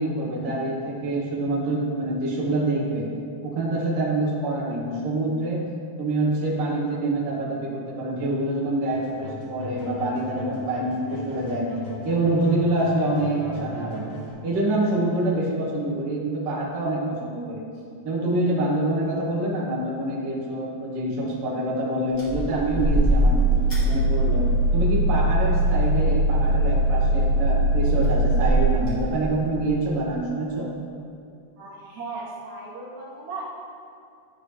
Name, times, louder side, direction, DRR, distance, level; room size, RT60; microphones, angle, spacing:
voice 1, 0.0-3.1 3.4-5.6 6.0-11.7 12.0-14.1 14.4-17.6 18.0-23.4 23.8-30.7, right 2 dB, 55° right, -4 dB, 1.9 m, -26 dB
sound 1, 8.9-14.3, left 3 dB, 65° left, 1.4 m, -38 dB
sound 2, 22.2-29.6, right 1 dB, 35° left, 1.8 m, -21 dB
voice 2, 31.6-33.4, right 3 dB, 75° right, -5 dB, 2.2 m, -36 dB
11.5 x 3.8 x 3.2 m, 2.3 s
omnidirectional pair, 3.4 m